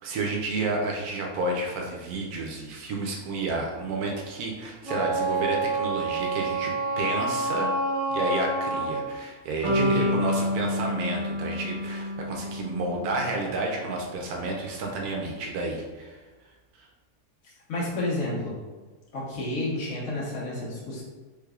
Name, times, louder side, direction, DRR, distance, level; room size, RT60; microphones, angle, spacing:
voice 1, 0.0-7.7 8.1-16.2 16.8-16.9, right 2 dB, 85° right, 0 dB, 1.1 m, -31 dB
Wind instrument woodwind instrument, 4.8-9.1, right 2 dB, 30° right, 1.3 m, -28 dB
voice 2, 9.6-10.2 17.4-18.5 19.1-21.0, left 1 dB, 65° left, -7 dB, 1.4 m, -30 dB
sound 1, 9.6-13.7, left 1 dB, 60° right, 1.8 m, -29 dB
3.3 x 3.2 x 2.3 m, 1.3 s
omnidirectional pair, 1.6 m